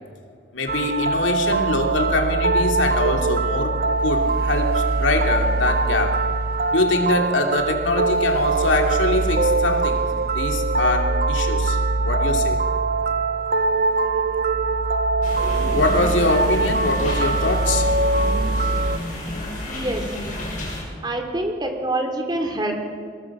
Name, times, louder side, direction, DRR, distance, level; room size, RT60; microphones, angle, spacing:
voice 1, 0.5-6.2 6.7-10.0 10.3-11.8 12.0-12.6 15.7-17.9, left 2 dB, 90° left, 3 dB, 2.7 m, -23 dB
sound 1, 0.7-19.0, right 3 dB, 55° right, 0.8 m, -22 dB
sound 2, 15.2-20.8, left 1 dB, 45° left, 7.0 m, -31 dB
voice 2, 19.7-20.1 21.0-22.7, right 1 dB, 25° right, 3 dB, 3.1 m, -26 dB
23.5 x 19.0 x 7.3 m, 2.1 s
head